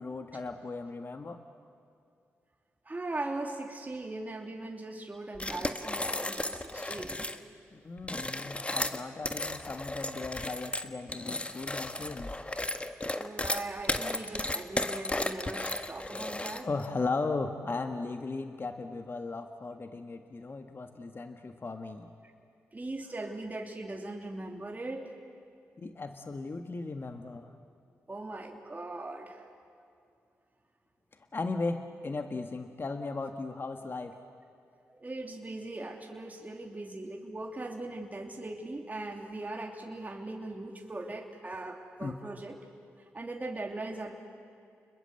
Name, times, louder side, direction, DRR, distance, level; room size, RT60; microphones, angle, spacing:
voice 1, 0.0-1.4 7.7-12.3 16.6-22.1 25.8-27.5 31.3-34.1 42.0-42.1, left 3 dB, 40° left, 6 dB, 1.6 m, -36 dB
voice 2, 2.8-7.3 13.1-16.7 22.7-25.0 28.1-29.5 34.9-42.6 43.0-44.2, right 2 dB, 30° right, 1 dB, 3.1 m, -39 dB
sound 1, 5.4-7.4 8.0-16.9, left 2 dB, 20° left, 1.6 m, -34 dB
30.0 x 21.0 x 7.9 m, 2.4 s
supercardioid pair, 45°, 6 cm